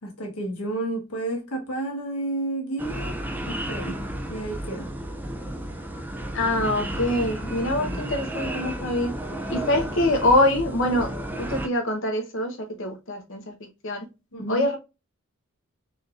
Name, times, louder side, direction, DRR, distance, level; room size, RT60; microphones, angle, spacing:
voice 1, 0.0-3.1 3.5-4.0 4.3-4.9 7.7-8.1 14.3-14.7, right 2 dB, 85° left, 1.4 m, -31 dB
sound 1, 2.8-11.7, right 1 dB, 10° right, 0.4 m, -32 dB
voice 2, 6.3-9.1 9.5-13.5 13.8-14.0 14.5-14.8, left 1 dB, 60° left, 1.0 m, -24 dB
4.2 x 3.4 x 2.4 m
head